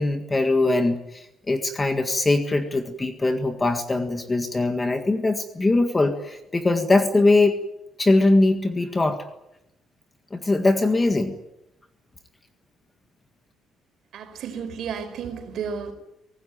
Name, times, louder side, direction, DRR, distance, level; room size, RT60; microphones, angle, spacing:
voice 1, 0.0-7.5 8.0-9.2 10.3-11.3, left 2 dB, 15° left, 7 dB, 1.8 m, -21 dB
voice 2, 14.1-15.9, right 6 dB, 55° right, 8 dB, 5.1 m, -32 dB
24.5 x 19.0 x 9.3 m, 0.87 s
cardioid pair, 160°, 0 cm